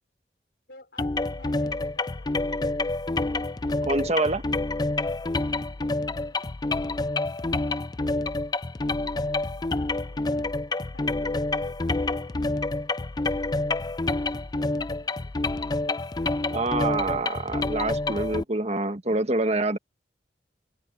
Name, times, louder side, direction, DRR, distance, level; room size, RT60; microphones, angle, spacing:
voice 1, 0.7-2.4 5.8-6.5 9.3-10.6 10.9-12.2 13.0-13.6 14.6-15.6 16.1-17.0, left 2 dB, 65° left, 4.9 m, -52 dB
sound 1, 1.0-18.4, left 2 dB, 25° left, 0.4 m, -28 dB
voice 2, 3.8-4.4 16.5-19.8, right 2 dB, 40° right, 1.4 m, -26 dB
open air
head